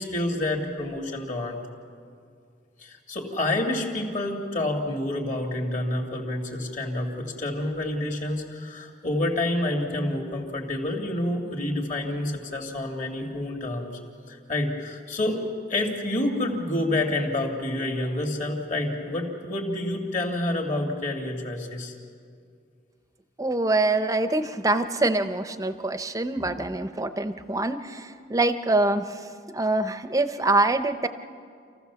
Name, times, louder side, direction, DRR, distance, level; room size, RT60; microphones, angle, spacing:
voice 1, 0.0-1.6 2.8-14.0 14.3-15.4 15.7-21.9, left 1 dB, 40° left, 2 dB, 2.5 m, -28 dB
voice 2, 23.4-29.2 29.5-31.1, right 2 dB, 20° right, 10 dB, 0.7 m, -25 dB
27.5 x 15.0 x 7.0 m, 2.3 s
head